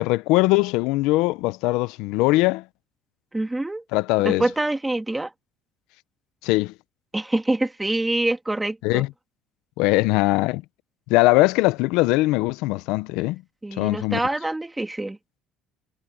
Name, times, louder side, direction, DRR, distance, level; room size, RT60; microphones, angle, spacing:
voice 1, 0.0-2.6 3.9-4.4 6.4-6.7 8.8-9.1 9.8-10.6 11.1-13.4 13.8-14.2, left 20 dB, 80° left, 0.5 m, -21 dB
voice 2, 3.3-3.8 4.2-5.3 7.1-9.1 13.6-15.2, right 2 dB, 5° right, 2.1 m, -25 dB
cardioid pair, 170°, 0 cm